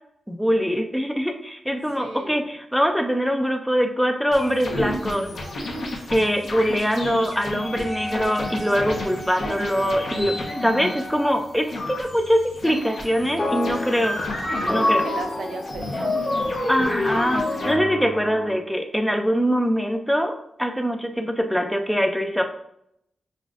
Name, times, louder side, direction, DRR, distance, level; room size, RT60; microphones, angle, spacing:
voice 1, 0.3-5.3 6.1-10.3 10.6-14.3 14.7-15.0 16.7-22.4, equal, ahead, 5 dB, 0.3 m, -23 dB
voice 2, 1.9-2.4 15.0-16.5, right 3 dB, 70° right, 5 dB, 0.5 m, -35 dB
sound 1, 4.3-17.7, left 2 dB, 70° left, 1.0 m, -33 dB
Wind instrument woodwind instrument, 7.6-11.5, equal, 40° left, 1.5 m, -36 dB
sound 2, 13.4-18.6, left 2 dB, 20° left, 0.8 m, -26 dB
7.1 x 2.5 x 2.4 m, 0.75 s
wide cardioid pair, 165°, 0 cm